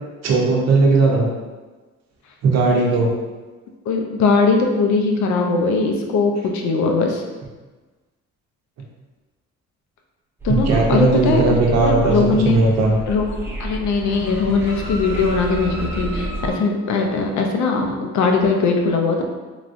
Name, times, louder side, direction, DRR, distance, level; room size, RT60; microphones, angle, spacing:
voice 1, 0.2-1.3 2.4-3.1 10.5-12.9, right 3 dB, 60° right, -1 dB, 0.7 m, -17 dB
voice 2, 3.9-7.2 10.4-12.6 13.1-19.2, left 4 dB, 70° left, 3 dB, 0.5 m, -20 dB
sound 1, 10.4-16.5, right 1 dB, 10° right, 0.6 m, -29 dB
3.1 x 2.5 x 2.5 m, 1.3 s
cardioid pair, 90°, 30 cm